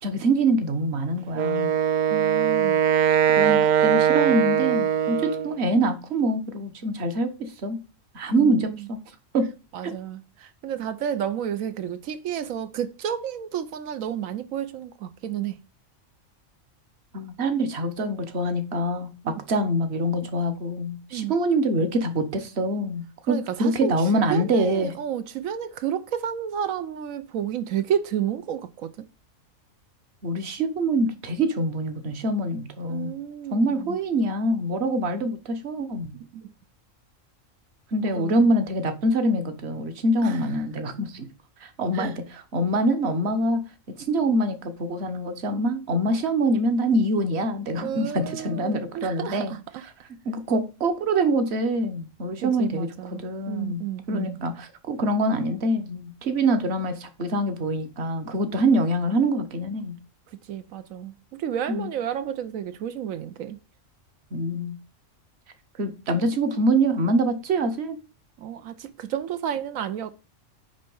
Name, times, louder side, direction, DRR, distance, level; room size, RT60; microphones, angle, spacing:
voice 1, 0.0-1.7 3.4-7.8 8.1-9.0 9.3-9.5 9.8-9.9 17.1-24.9 30.2-33.1 33.5-36.1 37.9-41.3 41.6-43.6 44.1-49.5 50.2-60.0 61.7-61.9 64.3-64.8 65.8-68.0, right 1 dB, 55° right, 1.3 m, -25 dB
Wind instrument woodwind instrument, 1.3-5.6, right 9 dB, 75° right, 0.4 m, -21 dB
voice 2, 2.1-2.8 8.3-8.9 9.7-15.6 19.2-19.3 21.1-21.3 23.3-29.1 32.9-34.0 36.1-36.4 38.0-38.5 40.2-40.4 41.9-42.1 47.8-49.8 52.4-54.4 60.3-63.6 68.4-70.1, right 9 dB, 90° right, 1.1 m, -31 dB
9.6 x 3.4 x 5.3 m
omnidirectional pair, 1.4 m